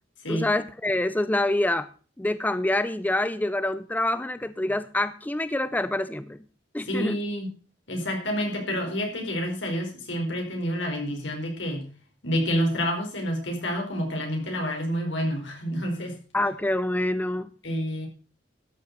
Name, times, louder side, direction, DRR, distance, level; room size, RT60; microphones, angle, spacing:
voice 1, 0.3-1.9 2.2-6.4 6.7-7.2 16.3-17.5, left 1 dB, 10° left, 13 dB, 0.5 m, -26 dB
voice 2, 6.9-7.5 7.9-11.9 12.2-16.1 17.6-18.1, equal, 80° left, 2 dB, 4.5 m, -28 dB
13.0 x 6.7 x 6.5 m, 0.38 s
head